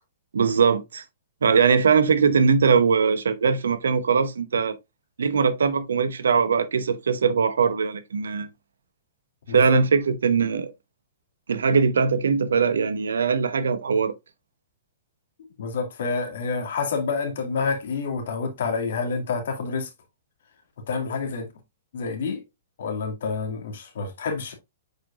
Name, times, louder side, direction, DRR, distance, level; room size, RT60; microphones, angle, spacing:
voice 1, 0.3-1.0 1.4-4.8 5.2-8.5 9.5-10.7 11.5-14.1, right 5 dB, 80° right, 0.8 m, -21 dB
voice 2, 9.5-9.8 15.6-19.9 20.9-21.5 21.9-22.4 22.8-24.5, left 4 dB, 70° left, 2.2 m, -28 dB
7.9 x 4.8 x 2.5 m
hypercardioid pair, 120°, 0 cm